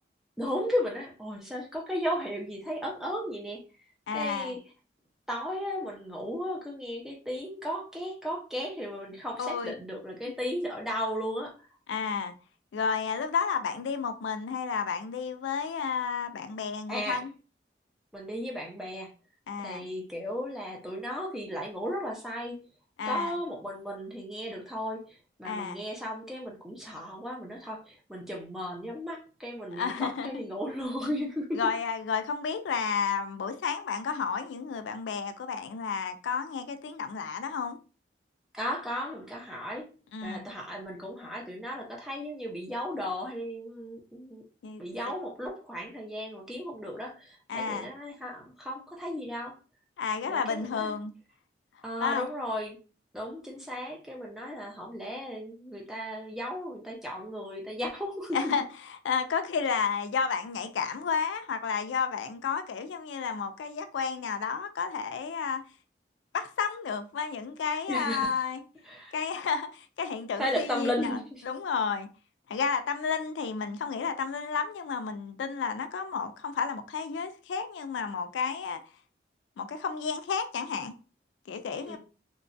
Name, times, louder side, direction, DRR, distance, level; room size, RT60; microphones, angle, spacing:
voice 1, 0.4-3.6 4.1-4.6 5.3-11.7 16.9-17.2 18.1-19.1 19.6-22.6 23.0-31.6 38.5-39.9 40.2-44.4 44.8-49.6 50.3-51.0 51.8-52.8 53.1-58.5 67.9-68.3 68.8-69.1 70.4-71.4 81.9-82.0, equal, ahead, 0.6 m, -35 dB
voice 2, 4.1-4.5 9.4-9.7 11.9-12.3 12.7-17.3 19.5-19.9 23.0-23.3 25.4-25.8 29.7-30.3 31.5-37.8 40.1-40.5 44.6-44.8 47.5-47.9 50.0-51.1 52.0-52.3 58.3-58.6 59.0-65.6 66.3-68.6 69.1-71.2 71.4-72.1 72.5-78.8 79.6-80.9 81.5-82.0, left 6 dB, 90° left, 0.3 m, -31 dB
2.9 x 2.2 x 2.5 m
head